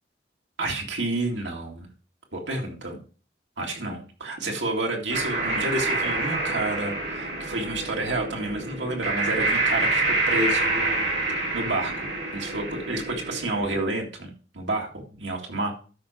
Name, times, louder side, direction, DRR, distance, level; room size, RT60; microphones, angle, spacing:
voice 1, 0.6-1.9 2.3-3.0 3.6-11.1 11.4-15.7, right 2 dB, 90° right, 1 dB, 2.3 m, -30 dB
sound 1, 5.1-13.8, right 2 dB, 70° right, 4.0 m, -27 dB
12.5 x 5.2 x 4.4 m, 0.38 s
head